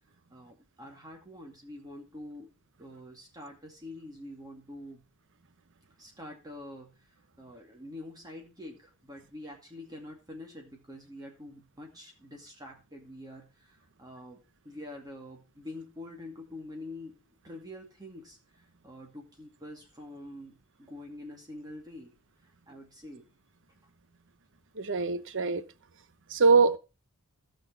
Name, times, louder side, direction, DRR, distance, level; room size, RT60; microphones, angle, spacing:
voice 1, 0.3-2.5 2.8-5.0 6.0-17.2 17.4-22.1 22.7-23.3, left 1 dB, 20° right, 2.3 m, -46 dB
voice 2, 24.8-25.6 26.3-26.8, right 4 dB, 60° right, 0.9 m, -23 dB
16.0 x 6.4 x 4.7 m
head